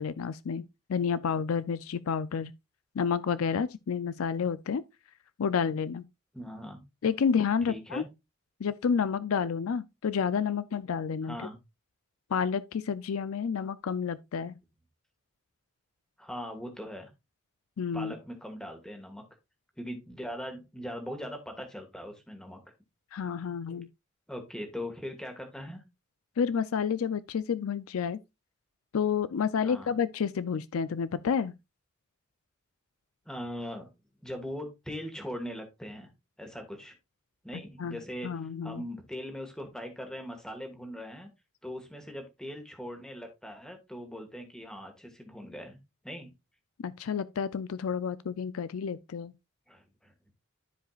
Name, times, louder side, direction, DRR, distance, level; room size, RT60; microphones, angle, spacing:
voice 1, 0.0-2.5 3.0-4.8 5.4-6.0 7.0-8.0 8.6-11.4 12.3-14.5 17.8-18.1 23.1-23.9 26.4-28.2 28.9-31.5 37.8-38.8 46.8-49.3, left 6 dB, 90° left, 0.4 m, -30 dB
voice 2, 6.3-6.8 7.7-8.1 11.2-11.6 16.2-17.1 17.9-19.2 19.8-22.6 24.3-25.8 29.6-29.9 33.2-33.9 34.2-36.1 36.4-36.9 37.4-38.3 38.6-41.3 41.6-45.8 46.0-46.3 49.7-50.1, equal, 5° left, 1.6 m, -40 dB
13.0 x 5.0 x 2.4 m
head